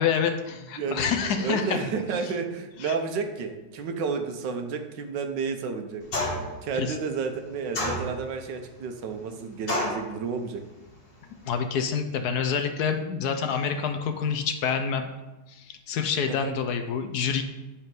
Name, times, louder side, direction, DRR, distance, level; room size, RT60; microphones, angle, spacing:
voice 1, 0.0-1.8 2.8-3.0 6.7-6.9 11.4-15.1 15.5-17.4, left 6 dB, 70° left, 7 dB, 1.1 m, -27 dB
voice 2, 0.8-6.0 6.6-10.6 16.3-16.5, right 5 dB, 80° right, 6 dB, 1.5 m, -31 dB
sound 1, 6.1-6.6 7.7-8.4 9.7-10.1, left 1 dB, 35° left, 1.3 m, -28 dB
8.2 x 4.4 x 5.2 m, 1.1 s
omnidirectional pair, 1.9 m